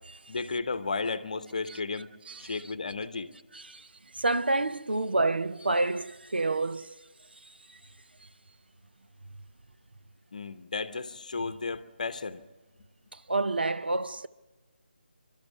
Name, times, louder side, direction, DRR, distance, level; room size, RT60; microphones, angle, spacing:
voice 1, 0.3-2.1 2.4-3.3 10.3-12.4, left 4 dB, 45° left, 1.0 m, -33 dB
voice 2, 2.3-2.6 3.5-3.9 4.1-7.0 7.4-7.5 13.1-14.3, right 2 dB, 65° right, 0.7 m, -29 dB
27.0 x 12.5 x 8.6 m
figure-of-eight pair, 155°, 6 cm